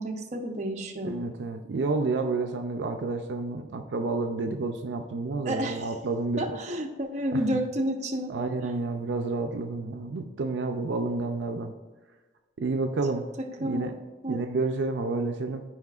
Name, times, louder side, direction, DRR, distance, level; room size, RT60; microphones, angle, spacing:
voice 1, 0.0-1.2 5.4-5.9 6.4-8.3 13.4-14.0 14.2-14.4, equal, 40° right, 2 dB, 0.8 m, -30 dB
voice 2, 1.0-6.6 7.3-7.4 8.3-11.7 12.6-13.3 13.6-13.9 14.3-15.6, right 3 dB, 75° right, 5 dB, 0.4 m, -30 dB
13.0 x 4.8 x 2.4 m, 1.3 s
head